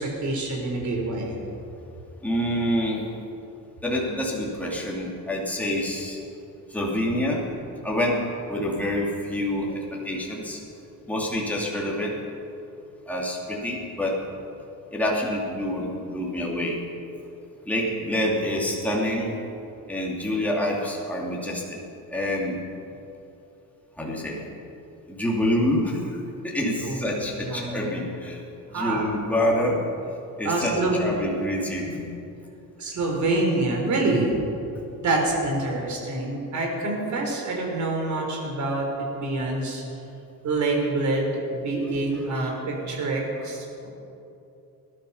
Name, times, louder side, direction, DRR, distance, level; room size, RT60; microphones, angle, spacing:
voice 1, 0.0-1.4 26.8-27.1 27.4-28.0 28.7-29.1 30.4-31.1 32.8-34.3 35.0-38.9 39.1-39.8 40.4-43.9, right 2 dB, 55° right, 0 dB, 4.0 m, -26 dB
voice 2, 2.2-3.0 3.8-6.2 6.7-7.5 7.8-8.2 8.5-10.6 11.1-12.1 13.1-14.2 14.9-16.8 17.6-19.4 19.9-21.8 22.1-22.6 24.0-24.5 25.1-26.1 26.4-28.4 28.7-29.8 30.4-30.7 31.0-32.1 42.3-42.5, left 1 dB, 5° left, -4 dB, 2.8 m, -27 dB
19.5 x 12.0 x 5.7 m, 2.8 s
cardioid pair, 135°, 35 cm